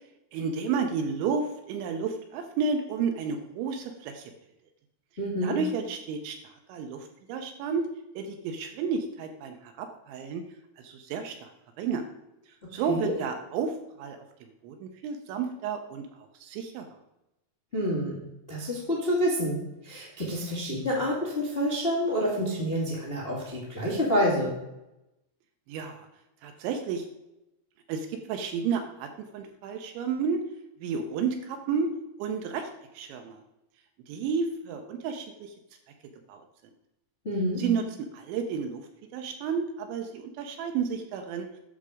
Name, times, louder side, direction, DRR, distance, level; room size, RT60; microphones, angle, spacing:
voice 1, 0.3-4.3 5.4-7.9 8.2-10.5 10.8-11.5 11.8-12.0 12.7-14.2 14.6-16.9 25.7-26.1 26.4-27.1 27.9-30.4 30.8-31.9 32.2-32.7 32.9-33.4 34.1-35.5 36.3-36.4 37.6-37.9 38.1-41.5, right 5 dB, 80° right, 6 dB, 2.8 m, -31 dB
voice 2, 5.2-5.6 12.9-13.1 17.7-18.2 18.5-19.6 19.8-24.5 37.2-37.6, equal, 85° left, -4 dB, 0.5 m, -28 dB
11.5 x 6.6 x 4.9 m, 0.92 s
omnidirectional pair, 6.0 m